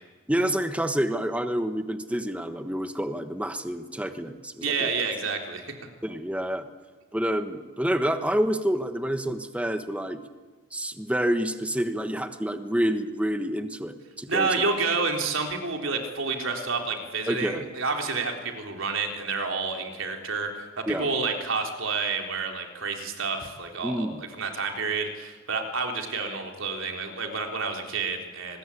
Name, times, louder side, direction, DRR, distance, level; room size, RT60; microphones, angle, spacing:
voice 1, 0.3-4.9 6.0-6.7 7.1-10.2 10.7-14.6 17.3-17.7 20.9-21.1 23.8-24.2, equal, 5° right, 8 dB, 1.2 m, -28 dB
voice 2, 4.6-5.6 14.3-28.6, right 4 dB, 70° right, 3 dB, 3.6 m, -29 dB
25.5 x 20.5 x 8.6 m, 1.4 s
head